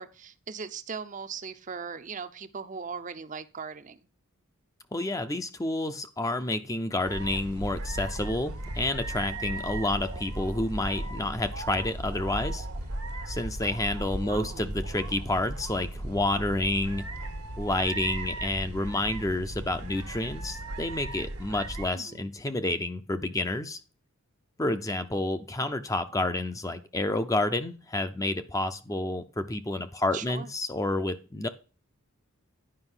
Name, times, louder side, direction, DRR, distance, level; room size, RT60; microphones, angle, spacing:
voice 1, 0.0-4.0 14.3-14.7 21.9-22.2 30.1-30.5, right 5 dB, 35° right, 0.6 m, -39 dB
voice 2, 4.9-12.7 13.3-17.0 17.6-23.8 24.6-31.5, left 2 dB, 15° left, 0.5 m, -29 dB
sound 1, 7.1-21.9, right 1 dB, 85° right, 1.5 m, -36 dB
9.9 x 5.2 x 5.6 m
head